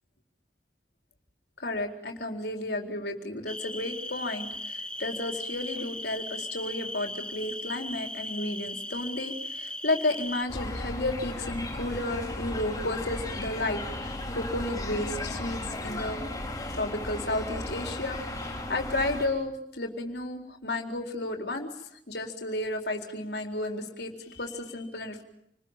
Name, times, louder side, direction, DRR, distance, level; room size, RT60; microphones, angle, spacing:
voice 1, 1.6-16.2 16.7-21.7 22.1-25.2, left 2 dB, 70° left, 3 dB, 4.3 m, -32 dB
sound 1, 3.5-10.5, left 1 dB, 5° left, 1.5 m, -38 dB
sound 2, 10.5-19.3, left 1 dB, 20° left, 5.4 m, -35 dB
29.5 x 21.0 x 9.0 m, 0.74 s
head